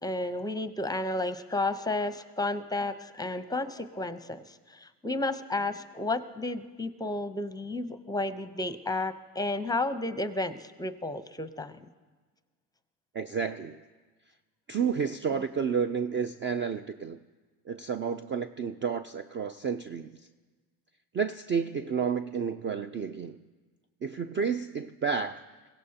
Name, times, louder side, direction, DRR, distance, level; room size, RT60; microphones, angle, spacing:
voice 1, 0.0-11.8, left 2 dB, 10° left, 11 dB, 0.7 m, -32 dB
voice 2, 13.1-13.8 14.7-17.2 17.7-20.2 21.1-23.4 24.0-25.4, right 6 dB, 25° right, 11 dB, 0.4 m, -31 dB
22.5 x 16.5 x 2.9 m, 1.4 s
hypercardioid pair, 80°, 46 cm